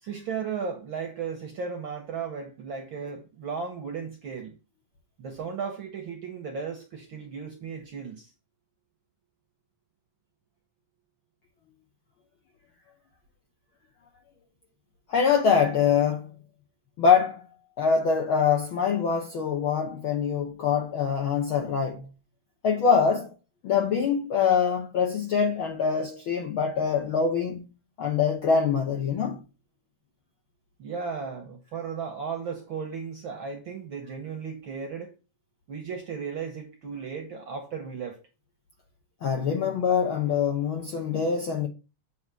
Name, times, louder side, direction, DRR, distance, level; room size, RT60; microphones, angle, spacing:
voice 1, 0.0-4.6 5.2-8.3 30.8-35.1 35.7-38.2, right 6 dB, 60° right, 1.3 m, -35 dB
voice 2, 15.1-16.3 17.0-17.4 17.8-22.1 22.6-23.3 23.6-27.6 28.0-29.4 39.2-41.7, left 6 dB, 70° left, 1.2 m, -24 dB
7.9 x 3.0 x 6.0 m
omnidirectional pair, 3.4 m